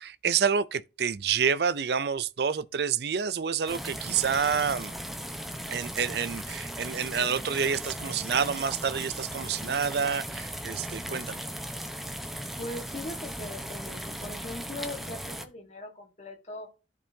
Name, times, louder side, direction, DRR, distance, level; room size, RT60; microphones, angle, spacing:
voice 1, 0.0-4.9 5.7-11.5, right 6 dB, 60° right, 0.5 m, -28 dB
sound 1, 3.7-15.5, equal, ahead, 0.9 m, -37 dB
sound 2, 4.5-14.3, left 6 dB, 65° left, 2.9 m, -61 dB
voice 2, 12.6-16.7, left 1 dB, 40° left, 1.6 m, -40 dB
14.0 x 5.3 x 2.8 m
head